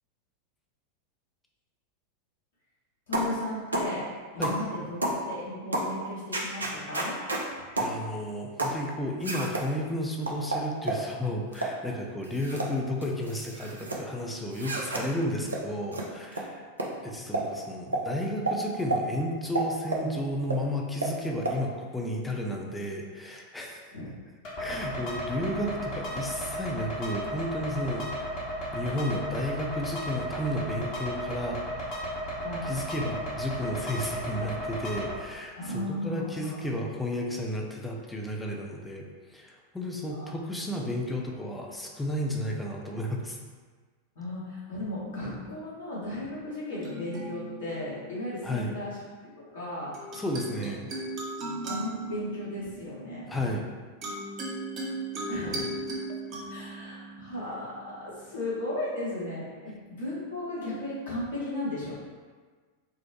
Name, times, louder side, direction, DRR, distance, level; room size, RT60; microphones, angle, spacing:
voice 1, 3.1-7.2 23.9-24.1 32.4-32.8 35.5-36.6 40.1-40.2 44.1-49.0 49.2-49.9 50.6-50.7 51.6-53.2 55.3-55.8 56.5-62.0, left 1 dB, 65° left, -8 dB, 1.4 m, -35 dB
sound 1, 3.1-3.3 3.7-3.9 4.4-4.6 5.0-5.2 5.7-5.9 6.3-7.4 7.8-7.9 8.6-8.8 9.2-9.7 10.3-11.0 11.5-11.8 12.2-12.7 13.0-14.0 14.5-15.0 15.5-15.6 15.9-16.0 16.3-16.4 16.8-16.9 17.3-17.5 17.9-18.0 18.5-18.6 18.9-19.0 19.5-20.1 20.5-20.6 21.0-21.1 21.4-21.6, right 2 dB, 80° right, 0.5 m, -30 dB
voice 2, 7.8-16.7 17.0-23.9 24.6-28.4 28.7-31.6 32.6-43.4 48.4-48.8 50.1-50.9 53.3-53.6, left 1 dB, 10° left, -1 dB, 0.5 m, -33 dB
sound 2, 24.4-35.1, equal, 45° left, 1.1 m, -34 dB
sound 3, 46.7-48.5 49.9-58.4, right 1 dB, 35° right, 0.7 m, -38 dB
4.5 x 2.0 x 3.0 m, 1.5 s
figure-of-eight pair, 90°, 0 cm